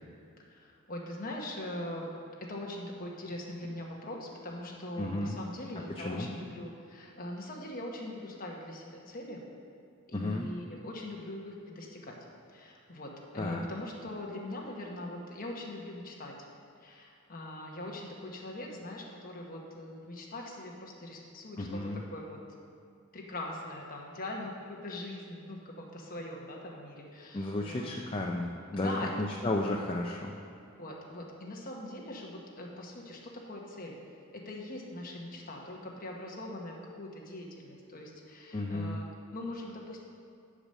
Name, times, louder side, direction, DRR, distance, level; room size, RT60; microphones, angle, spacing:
voice 1, 0.5-2.1 2.4-9.4 10.1-12.1 12.5-16.3 16.8-21.8 22.1-22.4 23.1-27.9 28.8-29.1 30.8-33.9 34.3-39.0 39.3-40.0, left 1 dB, 40° left, -1 dB, 1.1 m, -41 dB
voice 2, 5.0-5.4 5.9-6.3 10.1-10.5 13.4-13.6 21.6-22.0 27.3-30.4 38.5-39.0, left 2 dB, 25° left, 0 dB, 0.4 m, -33 dB
8.8 x 5.0 x 6.4 m, 2.4 s
head